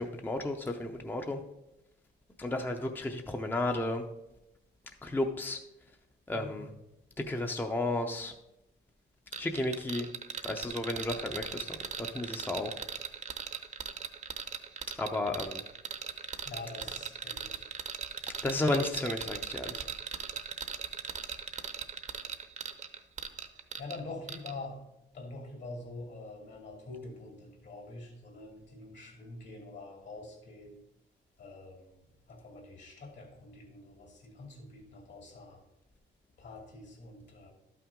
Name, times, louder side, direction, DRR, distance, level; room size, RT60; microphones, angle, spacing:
voice 1, 0.0-1.4 2.4-4.0 5.0-5.6 6.3-6.7 7.2-8.3 9.4-10.1 10.4-12.8 15.0-15.6 18.4-19.8, left 2 dB, 10° left, 4 dB, 0.6 m, -33 dB
voice 2, 6.3-6.7 16.4-17.7 23.6-24.8 25.1-30.8 31.4-32.0 32.3-35.6 36.4-37.5, left 2 dB, 65° left, 0 dB, 2.5 m, -45 dB
sound 1, 9.3-24.0 24.3-24.5, right 7 dB, 35° right, 0.8 m, -39 dB
12.0 x 5.8 x 3.7 m, 0.93 s
cardioid pair, 90°, 20 cm